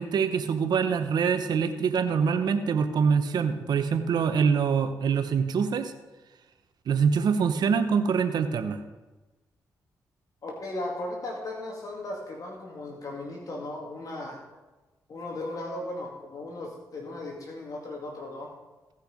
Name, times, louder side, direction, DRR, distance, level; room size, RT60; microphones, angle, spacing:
voice 1, 0.0-5.9 6.9-8.8, right 6 dB, 75° right, 9 dB, 1.0 m, -25 dB
voice 2, 10.4-14.4 15.1-18.5, left 2 dB, 55° left, 0 dB, 2.3 m, -36 dB
17.0 x 5.7 x 5.1 m, 1.1 s
cardioid pair, 65°, 7 cm